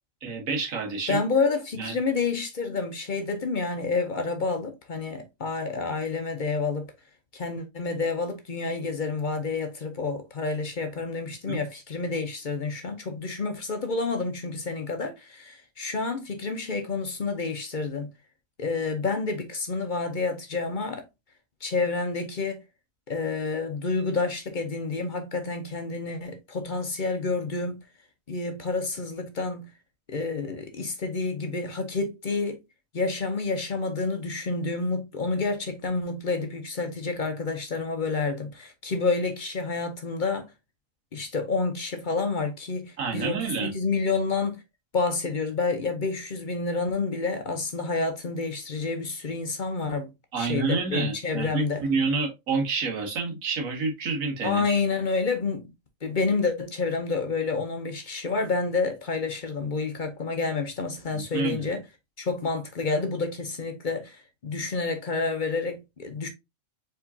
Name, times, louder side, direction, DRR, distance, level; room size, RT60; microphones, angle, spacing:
voice 1, 0.2-1.2 1.8-2.0 11.5-11.6 43.0-43.7 50.3-54.7 61.1-61.7, right 4 dB, 80° right, 1.6 m, -28 dB
voice 2, 1.1-6.9 7.3-18.1 18.6-21.0 21.6-22.6 23.1-27.8 28.3-29.7 30.1-32.6 32.9-40.5 41.1-44.6 44.9-50.1 50.4-51.8 54.4-55.6 56.0-61.8 62.2-66.3, left 4 dB, 45° left, 0.7 m, -29 dB
4.7 x 3.7 x 2.7 m
omnidirectional pair, 1.4 m